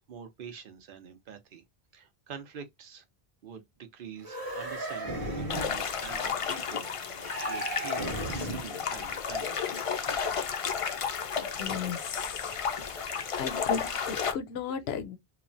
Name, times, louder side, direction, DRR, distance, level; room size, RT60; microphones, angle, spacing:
voice 1, 0.0-1.6 1.9-3.0 3.4-9.8, right 7 dB, 60° right, 0.8 m, -46 dB
sound 1, 4.2-5.8 7.2-8.8, right 1 dB, 20° right, 1.1 m, -35 dB
sound 2, 5.5-14.3, left 6 dB, 50° left, 0.4 m, -32 dB
voice 2, 11.4-13.1 13.4-15.2, left 6 dB, 80° left, 0.8 m, -36 dB
3.0 x 2.1 x 2.5 m
omnidirectional pair, 1.0 m